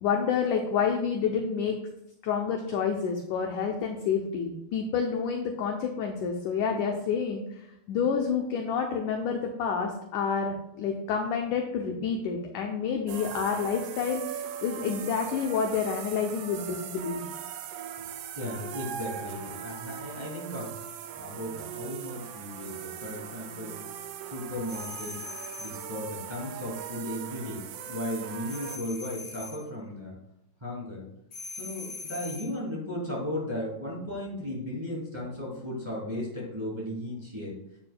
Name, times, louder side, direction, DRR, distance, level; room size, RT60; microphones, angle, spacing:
voice 1, 0.0-1.8 2.2-17.2, left 6 dB, 80° left, 2 dB, 1.8 m, -29 dB
sound 1, 13.1-28.8, right 8 dB, 85° right, 1.9 m, -40 dB
voice 2, 18.3-20.7 21.1-23.8 24.3-25.2 25.6-30.2 30.6-31.0 31.5-37.5, left 1 dB, 10° right, -7 dB, 2.5 m, -36 dB
sound 2, 24.7-25.9 28.5-29.7 31.3-32.6, left 3 dB, 35° left, 2.0 m, -41 dB
8.8 x 8.5 x 2.3 m, 0.82 s
omnidirectional pair, 4.3 m